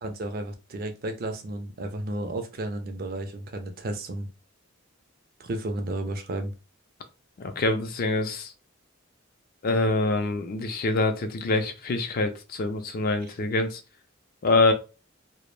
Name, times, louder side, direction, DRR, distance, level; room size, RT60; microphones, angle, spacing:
voice 1, 0.0-4.3 5.4-6.5, right 1 dB, 45° right, 6 dB, 0.4 m, -33 dB
voice 2, 7.4-8.5 9.6-13.8 14.4-14.7, left 2 dB, 45° left, 8 dB, 0.4 m, -25 dB
2.2 x 2.0 x 3.1 m, 0.30 s
head